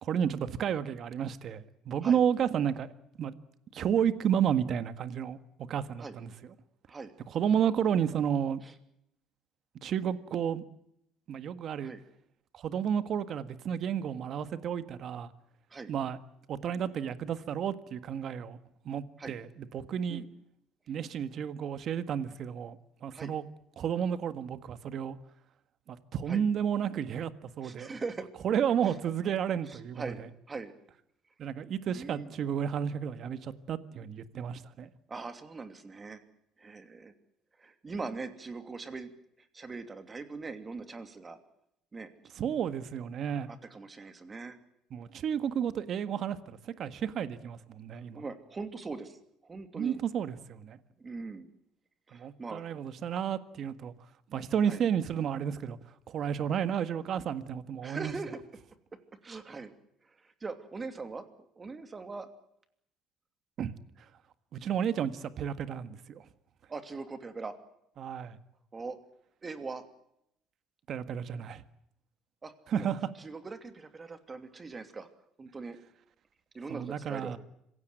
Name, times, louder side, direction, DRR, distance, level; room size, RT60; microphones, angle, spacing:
voice 1, 0.0-2.9 3.2-3.3 3.7-6.3 7.3-8.6 9.8-10.6 11.3-11.9 12.5-15.3 15.9-16.2 16.5-18.6 18.9-20.2 20.9-23.5 23.8-25.2 25.9-27.9 28.4-30.3 31.4-34.9 42.4-43.5 44.9-46.4 46.6-48.2 49.8-50.8 52.1-53.9 54.3-55.8 56.1-58.1 63.6-63.7 64.5-66.2 68.0-68.4 70.9-71.6 72.7-73.1 76.7-77.4, right 8 dB, 45° right, 13 dB, 1.6 m, -32 dB
voice 2, 27.6-28.3 28.8-28.9 29.2-29.3 29.7-30.2 30.5-30.7 31.9-32.3 35.1-36.2 36.6-37.1 37.6-39.1 39.4-41.4 41.9-42.1 43.5-44.6 48.1-50.0 51.0-51.5 52.1-52.6 54.6-54.8 57.8-58.4 59.2-59.7 60.1-61.2 61.6-62.3 66.7-67.6 68.7-69.0 69.4-69.8 72.4-72.9 73.2-75.1 75.4-75.8 76.5-77.4, right 4 dB, 20° right, 9 dB, 2.8 m, -41 dB
26.0 x 17.0 x 9.3 m, 0.77 s
cardioid pair, 135°, 0 cm